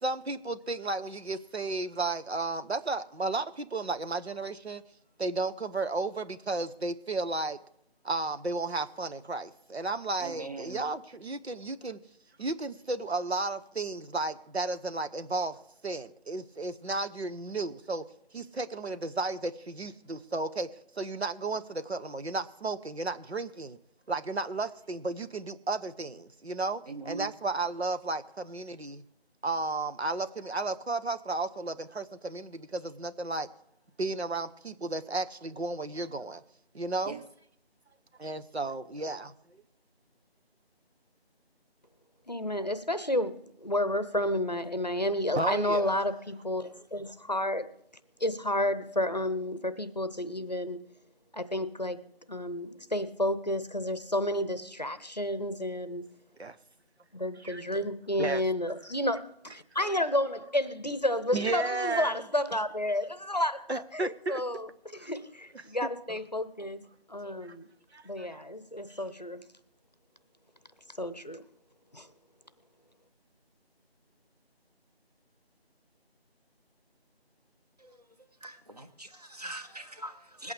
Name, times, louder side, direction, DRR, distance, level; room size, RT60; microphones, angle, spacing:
voice 1, 0.0-4.8 5.2-7.6 8.0-12.0 12.4-15.6 15.8-18.0 18.3-20.7 21.0-23.8 24.1-29.0 29.4-33.5 34.0-36.4 36.7-37.2 38.2-39.3 45.3-45.9 56.4-56.6 57.4-57.6 58.2-58.4 61.3-62.2 63.7-64.4 65.0-65.1 67.4-67.5 67.9-68.4 68.9-69.0, right 3 dB, 80° right, 1.1 m, -33 dB
voice 2, 10.2-10.8 26.9-27.3 37.1-37.2 77.8-78.0 78.4-80.5, right 2 dB, 40° right, 1.2 m, -41 dB
voice 3, 42.3-47.7 48.2-50.8 51.3-52.0 52.3-56.1 57.1-66.8 67.1-67.7 68.0-69.4 70.9-71.4 71.9-72.1, left 1 dB, 40° left, 0.7 m, -31 dB
21.5 x 8.6 x 3.4 m
figure-of-eight pair, 175°, 32 cm